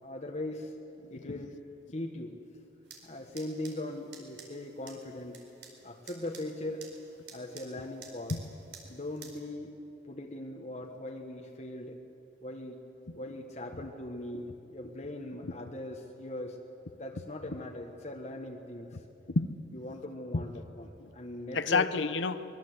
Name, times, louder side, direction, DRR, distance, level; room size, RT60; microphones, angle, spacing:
voice 1, 0.0-0.7 1.1-1.6 1.9-2.3 3.0-5.4 5.8-6.9 7.3-8.4 8.9-9.7 10.1-12.0 12.4-12.8 13.1-16.6 16.9-18.9 19.7-21.9, left 1 dB, 40° left, 1 dB, 1.4 m, -40 dB
voice 2, 1.0-1.5 8.3-8.4 19.3-19.6 20.3-20.4 21.0-21.1 21.5-22.6, left 4 dB, 85° left, 11 dB, 0.9 m, -30 dB
sound 1, 2.8-9.3, right 5 dB, 75° right, 4.5 m, -53 dB
24.0 x 22.0 x 8.1 m, 2.9 s
head